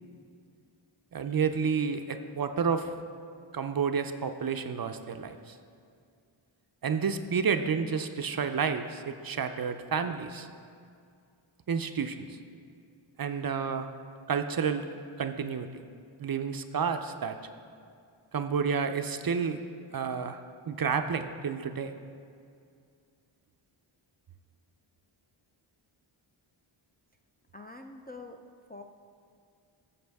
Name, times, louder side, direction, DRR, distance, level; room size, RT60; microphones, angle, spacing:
voice 1, 1.1-2.9 3.5-5.5 6.8-10.5 11.7-12.4 13.2-13.9 14.3-14.8 15.2-15.7 16.2-17.4 18.3-19.6 19.9-20.4 20.7-21.9, right 6 dB, 45° right, 8 dB, 0.5 m, -30 dB
voice 2, 27.5-28.4 28.7-28.8, left 3 dB, 20° left, 3 dB, 0.3 m, -45 dB
13.5 x 7.2 x 3.5 m, 2.3 s
wide cardioid pair, 115°, 49 cm